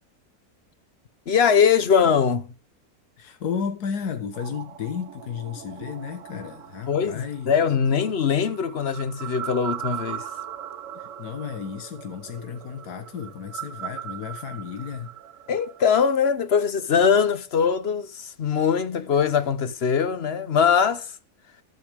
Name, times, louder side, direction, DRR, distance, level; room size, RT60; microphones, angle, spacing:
voice 1, 1.3-2.5 6.9-10.3 15.5-21.1, left 7 dB, 50° left, 1.0 m, -22 dB
voice 2, 3.2-7.5 10.9-15.1, left 7 dB, 85° left, 1.8 m, -33 dB
sound 1, 4.3-15.9, right 10 dB, 60° right, 1.2 m, -39 dB
13.5 x 12.0 x 3.6 m
omnidirectional pair, 1.6 m